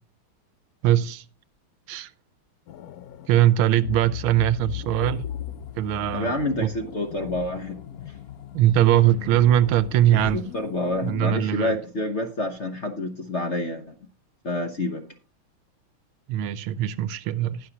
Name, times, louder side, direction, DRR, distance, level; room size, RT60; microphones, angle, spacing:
voice 1, 0.8-1.2 1.9-2.1 3.3-5.2 5.8-6.3 6.6-6.7 8.5-10.4 11.0-11.8 16.3-17.6, right 12 dB, 80° right, 1.5 m, -21 dB
sound 1, 2.7-11.2, left 9 dB, 75° left, 0.8 m, -38 dB
voice 2, 6.1-8.2 10.3-13.9 14.4-15.0, left 1 dB, 45° left, 1.0 m, -28 dB
19.5 x 6.6 x 2.9 m
omnidirectional pair, 2.3 m